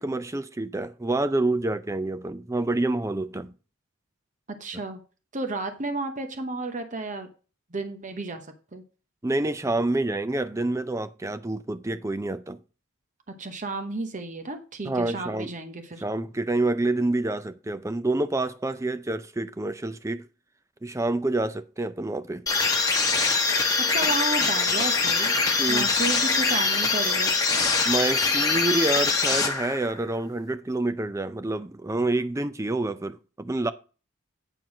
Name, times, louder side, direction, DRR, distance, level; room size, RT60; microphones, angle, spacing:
voice 1, 0.0-3.5 9.2-12.6 14.8-15.5 16.0-20.3 20.8-22.5 25.6-25.9 27.8-33.7, right 2 dB, 15° right, 0.4 m, -27 dB
voice 2, 4.6-5.0 5.3-7.3 7.7-8.5 8.7-8.8 13.4-16.0 23.9-25.3 25.7-27.3, right 2 dB, 35° right, 0.9 m, -32 dB
sound 1, 22.5-30.0, left 4 dB, 15° left, 1.3 m, -23 dB
9.0 x 4.6 x 6.1 m
head